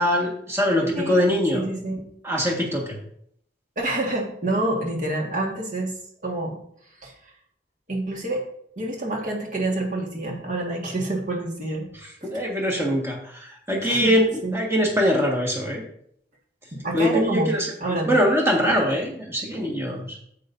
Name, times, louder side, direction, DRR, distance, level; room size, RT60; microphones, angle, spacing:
voice 1, 0.0-1.6 2.2-3.0 12.2-14.3 14.5-15.8 16.9-20.2, equal, 15° right, -1 dB, 1.7 m, -23 dB
voice 2, 0.9-1.3 1.5-2.0 3.8-5.9 6.2-6.6 7.0-7.1 7.9-8.4 8.8-11.9 12.3-12.6 13.8-14.2 14.4-14.6 16.7-17.5 17.8-18.1, right 2 dB, 45° right, 0 dB, 1.8 m, -27 dB
10.0 x 7.7 x 2.7 m, 0.67 s
head